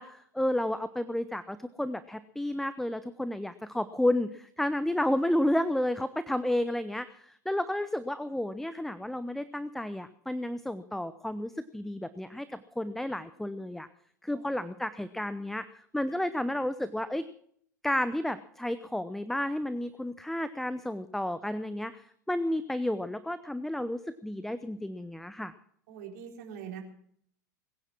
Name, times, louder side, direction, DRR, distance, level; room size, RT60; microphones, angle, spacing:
voice 1, 0.0-13.9 14.2-17.2 17.8-25.5, left 1 dB, 5° left, 14 dB, 0.7 m, -31 dB
voice 2, 14.3-14.7 25.9-26.8, right 8 dB, 60° right, 2 dB, 3.9 m, -43 dB
21.5 x 9.9 x 6.0 m, 0.65 s
hypercardioid pair, 90°, 10 cm